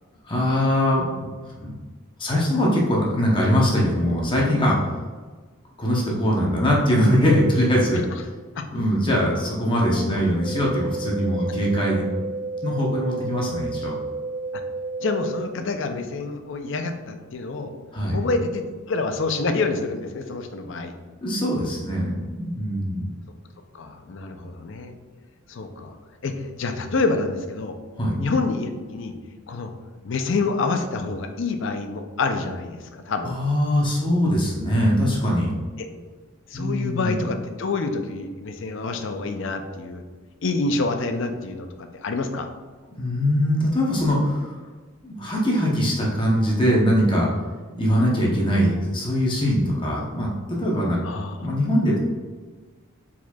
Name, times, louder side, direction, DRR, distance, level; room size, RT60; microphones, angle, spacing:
voice 1, 0.2-1.7 2.2-4.8 5.8-8.0 8.7-12.1 12.6-13.9 17.9-18.2 21.2-23.1 28.0-28.2 33.2-35.5 36.5-37.2 43.0-44.5 45.0-47.3 47.7-51.0 51.4-52.0, equal, 25° left, -3 dB, 0.8 m, -22 dB
sound 1, 10.4-15.4, right 3 dB, 55° right, 0.7 m, -31 dB
voice 2, 15.0-17.7 18.1-20.9 23.7-24.9 25.5-26.0 26.2-27.8 28.2-29.2 29.5-29.7 30.0-33.4 35.8-35.9 36.5-40.0 40.4-42.5 51.0-51.5, left 3 dB, 60° left, 6 dB, 0.4 m, -27 dB
4.7 x 4.3 x 2.3 m, 1.4 s
head